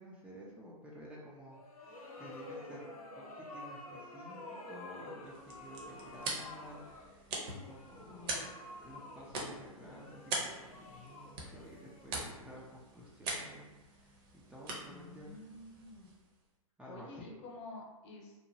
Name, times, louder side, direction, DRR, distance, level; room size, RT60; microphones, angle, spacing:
voice 1, 0.0-8.5 8.8-15.3 16.8-17.3, equal, 5° right, -6 dB, 0.3 m, -52 dB
sound 1, 1.5-12.5, left 2 dB, 85° left, 0.6 m, -50 dB
sound 2, 5.2-16.4, right 2 dB, 40° right, 0.7 m, -44 dB
voice 2, 8.1-8.5 14.9-16.2 16.9-18.4, left 2 dB, 55° left, -1 dB, 0.9 m, -50 dB
2.9 x 2.1 x 2.6 m, 1.1 s
hypercardioid pair, 120°, 18 cm